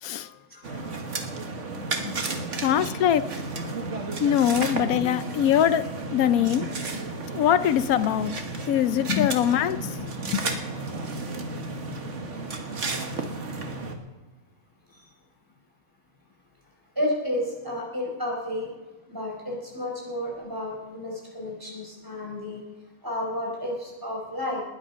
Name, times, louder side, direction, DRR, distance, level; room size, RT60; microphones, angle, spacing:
voice 1, 0.0-0.3 0.7-0.8 2.0-2.2 2.6-3.2 4.2-5.9 6.1-6.7 7.3-8.3 8.7-10.6, left 10 dB, 85° left, 14 dB, 1.1 m, -23 dB
sound 1, 0.6-14.0, right 3 dB, 55° right, 1.9 m, -33 dB
voice 2, 16.9-18.7 19.1-22.6 23.0-24.6, left 1 dB, 15° right, -2 dB, 5.0 m, -31 dB
20.0 x 9.6 x 5.7 m, 1.1 s
omnidirectional pair, 1.5 m